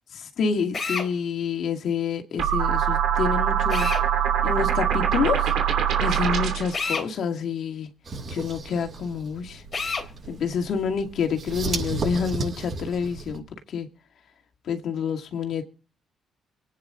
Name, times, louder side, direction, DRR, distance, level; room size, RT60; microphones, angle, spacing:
voice 1, 0.2-3.9 4.4-5.5 6.0-7.9 8.3-9.6 10.3-13.4 13.7-13.9 14.7-15.6, left 6 dB, 65° left, 2.2 m, -28 dB
Drill, 0.7-1.1 3.7-4.1 6.7-7.1 9.7-10.1, left 4 dB, 45° left, 3.2 m, -28 dB
sound 1, 2.4-6.8, right 9 dB, 80° right, 2.7 m, -23 dB
sound 2, 8.0-13.4, right 3 dB, 45° right, 6.7 m, -34 dB
24.5 x 9.7 x 3.8 m
cardioid pair, 90°, 0 cm